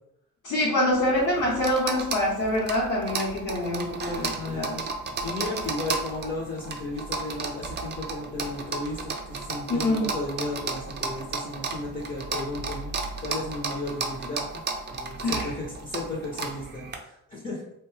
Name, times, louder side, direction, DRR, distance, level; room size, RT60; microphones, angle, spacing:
voice 1, 0.4-4.8 9.7-10.1 15.2-15.5, left 1 dB, 70° left, -6 dB, 1.0 m, -25 dB
sound 1, 0.9-17.0, right 4 dB, 35° right, 0.5 m, -34 dB
voice 2, 4.3-4.9 5.2-12.9 13.2-14.6 14.9-17.6, left 2 dB, 25° left, -3 dB, 0.7 m, -34 dB
2.6 x 2.2 x 3.2 m, 0.79 s
cardioid pair, 90°, 30 cm